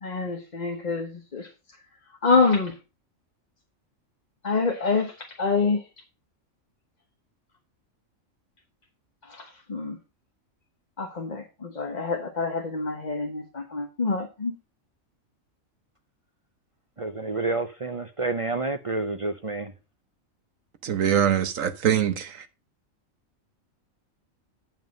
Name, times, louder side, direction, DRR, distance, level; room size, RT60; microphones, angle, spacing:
voice 1, 0.0-1.5 2.2-2.8 4.4-5.8 9.2-10.0 11.0-14.5, left 4 dB, 35° left, 1.1 m, -26 dB
voice 2, 17.0-19.7, right 3 dB, 40° right, 0.4 m, -29 dB
voice 3, 20.8-22.5, right 9 dB, 70° right, 1.4 m, -23 dB
9.2 x 6.0 x 5.1 m
omnidirectional pair, 1.4 m